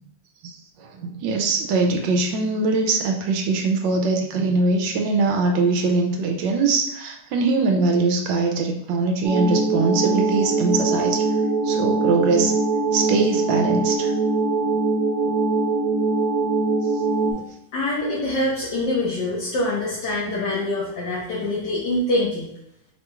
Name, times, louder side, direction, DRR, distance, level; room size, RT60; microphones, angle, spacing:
voice 1, 1.0-11.2 11.7-12.5 12.9-14.1 17.3-17.4, right 3 dB, 85° right, 3 dB, 1.3 m, -22 dB
sound 1, 9.2-17.3, right 3 dB, 65° right, 1.0 m, -22 dB
voice 2, 17.7-22.5, left 1 dB, 70° left, -7 dB, 1.6 m, -24 dB
4.7 x 2.9 x 2.3 m, 0.80 s
omnidirectional pair, 2.0 m